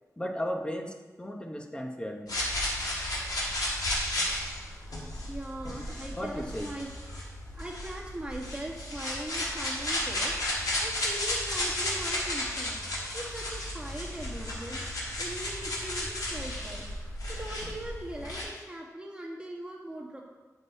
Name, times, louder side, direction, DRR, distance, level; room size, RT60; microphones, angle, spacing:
voice 1, 0.2-2.3 6.1-6.7, equal, 15° left, 4 dB, 0.8 m, -35 dB
sound 1, 2.3-18.5, left 1 dB, 85° left, 1.9 m, -33 dB
voice 2, 5.3-6.9 7.5-10.4 10.8-12.8 13.1-14.9 15.2-16.8 17.3-20.2, right 1 dB, 15° right, -3 dB, 1.5 m, -40 dB
9.8 x 5.5 x 4.1 m, 1.2 s
wide cardioid pair, 105°, 6 cm